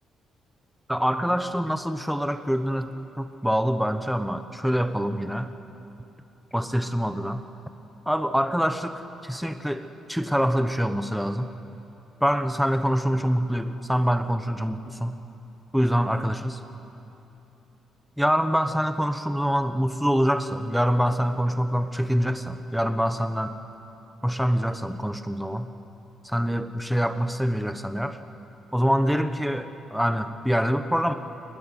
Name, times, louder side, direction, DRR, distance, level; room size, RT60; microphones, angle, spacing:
voice 1, 0.9-2.9 3.2-5.5 6.5-7.4 8.1-11.5 12.2-15.2 15.7-16.6 18.2-23.5 24.2-25.7 26.2-28.2 28.7-31.1, equal, ahead, 9 dB, 1.0 m, -25 dB
22.0 x 20.0 x 9.3 m, 3.0 s
cardioid pair, 90°, 0 cm